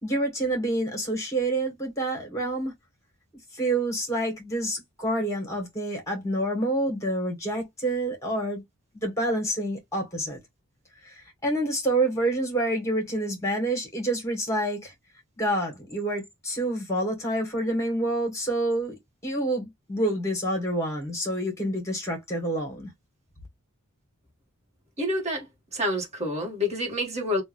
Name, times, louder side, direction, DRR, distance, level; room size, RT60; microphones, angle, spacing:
voice 1, 0.0-2.7 3.5-8.6 8.9-10.4 11.0-14.9 15.4-19.0 19.2-22.9, right 1 dB, 15° left, 1.9 m, -28 dB
voice 2, 25.0-25.5 25.7-27.4, left 1 dB, 30° right, 1.7 m, -28 dB
3.3 x 2.7 x 3.2 m
head